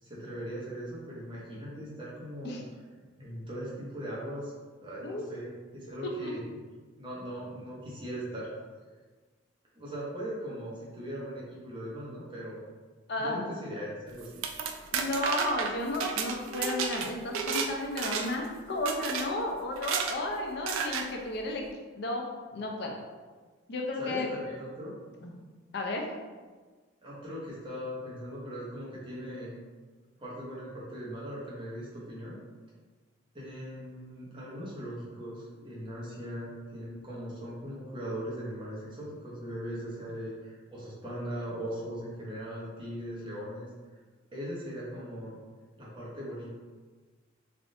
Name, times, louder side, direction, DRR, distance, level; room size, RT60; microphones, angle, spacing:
voice 1, 0.0-2.6 3.2-4.5 4.8-6.6 7.0-8.5 9.8-12.6 13.2-14.4 24.0-24.9 27.0-29.6 30.2-32.4 33.3-43.7 44.3-45.4 45.8-46.5, equal, 25° right, -6 dB, 0.7 m, -39 dB
voice 2, 13.1-13.5 14.9-21.6 22.0-22.2 22.5-22.9 23.7-24.3 25.2-25.3 25.7-26.0, left 2 dB, 55° left, 1 dB, 0.5 m, -33 dB
sound 1, 14.2-17.7 18.0-18.5 18.9-19.3 19.8-20.2 20.7-21.1, right 6 dB, 75° right, 0.3 m, -32 dB
3.4 x 2.5 x 2.5 m, 1.4 s
head